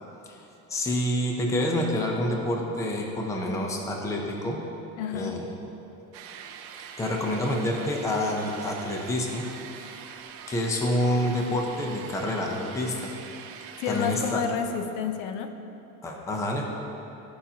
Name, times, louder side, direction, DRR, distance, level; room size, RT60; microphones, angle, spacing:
voice 1, 0.3-4.6 5.1-5.4 7.0-9.5 10.5-13.1 13.9-14.4 16.0-16.6, left 1 dB, 10° left, 1 dB, 0.5 m, -28 dB
voice 2, 5.0-5.4 13.8-15.5, left 7 dB, 75° left, 7 dB, 0.7 m, -30 dB
sound 1, 6.1-14.3, right 7 dB, 45° right, 0.5 m, -43 dB
14.5 x 5.7 x 2.8 m, 2.9 s
cardioid pair, 180°, 32 cm